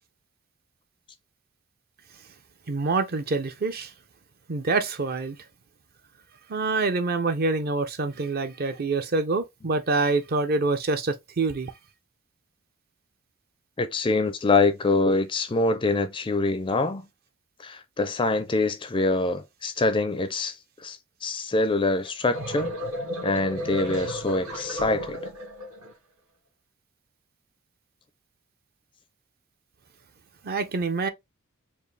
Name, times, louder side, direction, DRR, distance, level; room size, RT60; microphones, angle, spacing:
voice 1, 2.7-3.9 4.5-5.4 6.5-11.7 30.4-31.1, right 3 dB, 45° right, 0.6 m, -26 dB
voice 2, 13.8-17.0 17.6-20.5 20.8-22.7 23.2-25.2, left 3 dB, 20° left, 0.4 m, -25 dB
sound 1, 22.0-25.9, equal, 75° right, 1.8 m, -34 dB
4.5 x 2.6 x 3.1 m
head